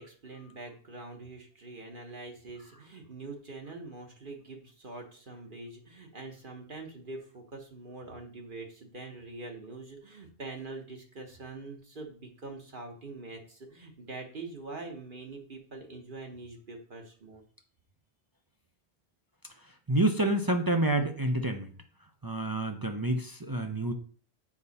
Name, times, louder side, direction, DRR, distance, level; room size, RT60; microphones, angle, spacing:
voice 1, 0.0-17.4, right 3 dB, 50° right, 2 dB, 1.3 m, -44 dB
voice 2, 19.9-21.7 22.2-23.9, right 1 dB, 25° right, 4 dB, 0.5 m, -28 dB
7.2 x 5.4 x 4.1 m, 0.44 s
omnidirectional pair, 1.1 m